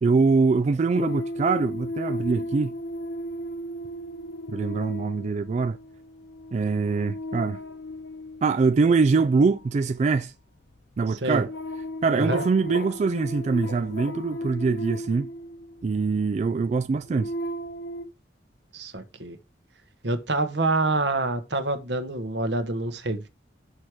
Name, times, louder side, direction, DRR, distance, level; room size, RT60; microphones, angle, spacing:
voice 1, 0.0-2.7 4.5-5.8 6.5-7.6 8.4-10.3 11.0-11.5 12.0-15.3 15.8-17.3, right 4 dB, 40° right, 0.3 m, -23 dB
sound 1, 0.9-16.1 16.7-18.1, left 1 dB, 80° left, 0.9 m, -35 dB
voice 2, 11.1-11.4 12.2-12.4 18.7-19.4 20.0-23.3, right 2 dB, 70° right, 1.3 m, -27 dB
6.4 x 4.9 x 6.0 m
head